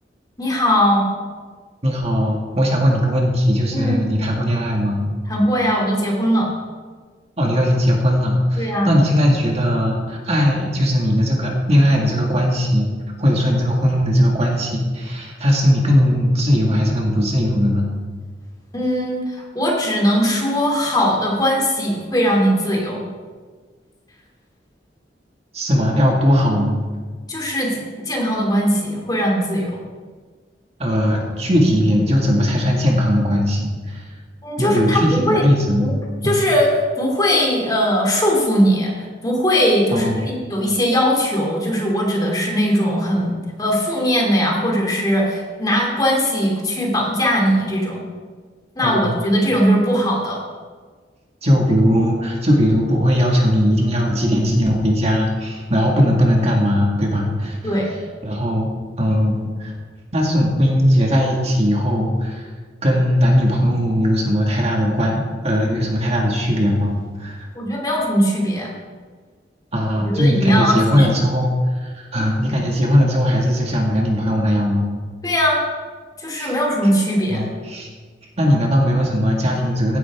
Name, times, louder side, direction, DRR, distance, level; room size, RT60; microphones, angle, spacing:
voice 1, 0.4-1.1 3.7-4.0 5.3-6.5 8.6-8.9 18.7-23.1 27.3-29.8 34.4-35.4 35.8-35.9 36.2-38.9 39.2-48.0 48.8-50.4 57.6-57.9 67.5-68.7 70.0-71.1 75.2-75.6 76.2-77.5, equal, 20° left, -1 dB, 2.7 m, -19 dB
voice 2, 1.8-5.1 7.4-12.9 13.2-17.9 25.5-26.8 30.8-34.0 34.6-35.9 36.2-36.4 39.9-40.2 48.8-49.1 51.4-57.6 58.2-58.7 59.0-59.7 60.1-62.5 62.8-66.9 67.2-67.4 69.7-71.5 71.8-74.9 76.4-76.5 77.3-77.9 78.4-80.0, equal, 35° right, -1 dB, 1.9 m, -18 dB
16.0 x 10.5 x 3.6 m, 1.5 s
head